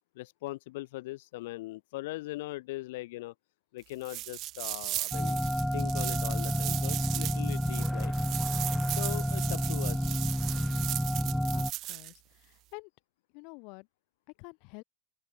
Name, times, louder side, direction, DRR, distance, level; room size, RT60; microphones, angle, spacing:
voice 1, 0.2-3.3 3.7-5.4 5.7-8.1 8.9-10.2, left 19 dB, 75° left, 2.4 m, -40 dB
sound 1, 4.0-12.1, right 16 dB, 45° right, 0.9 m, -37 dB
sound 2, 5.1-11.7, equal, ahead, 0.4 m, -30 dB
voice 2, 11.5-12.9 13.3-13.9 14.4-14.8, left 34 dB, 60° left, 3.2 m, -49 dB
open air
supercardioid pair, 125°, 0 cm